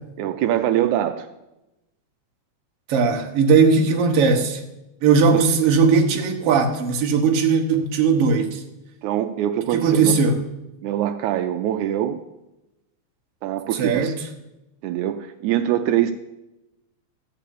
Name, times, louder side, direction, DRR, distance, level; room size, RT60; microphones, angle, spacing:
voice 1, 0.2-1.3 5.3-5.4 9.0-10.2 10.8-12.2 13.4-14.2 14.8-16.1, right 11 dB, 85° right, 7 dB, 2.0 m, -23 dB
voice 2, 2.9-4.6 5.0-8.6 9.7-10.4 13.7-14.1, right 5 dB, 60° right, 3 dB, 2.0 m, -18 dB
13.5 x 4.9 x 8.4 m, 0.95 s
omnidirectional pair, 3.4 m